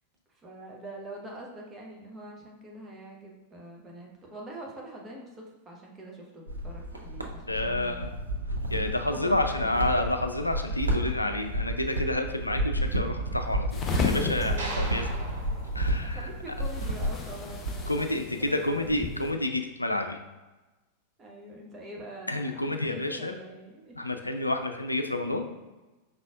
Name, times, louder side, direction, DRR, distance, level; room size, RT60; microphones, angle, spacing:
voice 1, 0.3-8.3 9.1-10.0 10.8-10.9 14.4-15.3 16.0-19.4 21.2-24.1, right 1 dB, 20° right, -1 dB, 1.0 m, -44 dB
sound 1, 6.5-18.1, right 1 dB, 85° right, 0.5 m, -31 dB
voice 2, 7.5-8.2 8.7-15.1 15.7-16.3 17.9-20.2 22.3-23.3 24.0-25.4, left 1 dB, 85° left, 6 dB, 0.3 m, -29 dB
sound 2, 13.7-19.3, left 5 dB, 25° left, 0.6 m, -35 dB
sound 3, 14.6-16.9, right 2 dB, 65° right, 0.9 m, -40 dB
5.5 x 4.1 x 2.3 m, 1.1 s
figure-of-eight pair, 90°, 0 cm